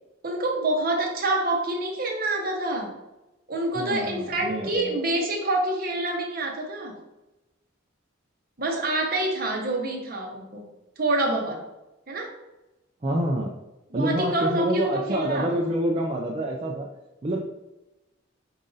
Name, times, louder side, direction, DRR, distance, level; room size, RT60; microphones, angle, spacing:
voice 1, 0.2-2.9 3.5-7.0 8.6-10.7 11.0-11.6 12.1-12.3 13.9-15.6, right 2 dB, 45° right, 1 dB, 0.9 m, -27 dB
voice 2, 3.7-5.0 13.0-13.5 13.9-16.9 17.2-17.4, right 1 dB, 30° right, -3 dB, 0.4 m, -27 dB
4.9 x 2.7 x 3.8 m, 0.98 s
head